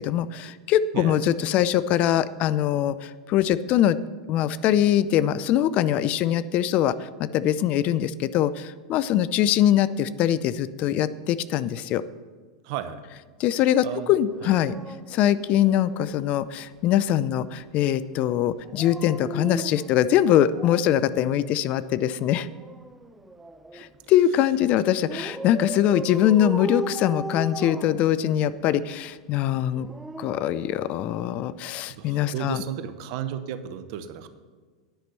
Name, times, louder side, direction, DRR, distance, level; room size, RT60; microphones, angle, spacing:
voice 1, 0.0-4.0 4.3-12.0 13.4-14.8 15.1-22.5 23.7-29.9 30.2-32.6, left 11 dB, 45° left, 16 dB, 0.4 m, -23 dB
voice 2, 12.6-13.0 13.8-14.1 14.4-14.5 31.9-34.3, right 9 dB, 60° right, 11 dB, 0.8 m, -33 dB
Dog, 14.3-16.1 18.6-21.0 22.3-23.9 25.1-28.6 29.6-31.3 32.5-32.7, right 2 dB, 5° right, 0.6 m, -37 dB
10.0 x 6.0 x 6.7 m, 1.5 s
hypercardioid pair, 105°, 3 cm